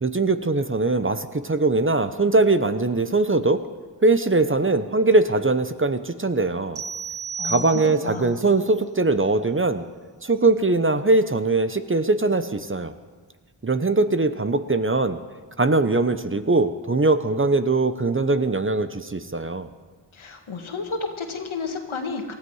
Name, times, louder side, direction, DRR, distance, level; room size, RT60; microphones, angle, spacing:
voice 1, 0.0-3.6 4.0-6.8 7.4-9.9 10.2-12.9 13.6-15.2 15.6-19.7, right 3 dB, 25° right, 11 dB, 0.8 m, -21 dB
sound 1, 6.8-8.3, right 4 dB, 60° right, 1.1 m, -33 dB
voice 2, 7.4-8.3 20.1-22.3, left 4 dB, 80° left, 4 dB, 1.9 m, -31 dB
19.0 x 13.5 x 4.8 m, 1.4 s
cardioid pair, 40°, 48 cm